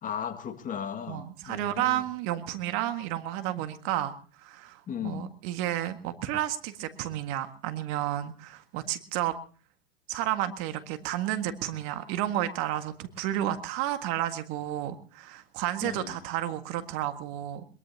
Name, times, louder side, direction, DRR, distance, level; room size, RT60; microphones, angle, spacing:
voice 1, 0.0-2.0 4.9-5.3 15.8-16.2, left 8 dB, 25° left, 9 dB, 1.9 m, -36 dB
voice 2, 1.1-4.1 4.4-9.3 10.1-17.6, right 13 dB, 45° right, 8 dB, 1.8 m, -31 dB
22.0 x 22.0 x 2.8 m, 0.39 s
hypercardioid pair, 95°, 29 cm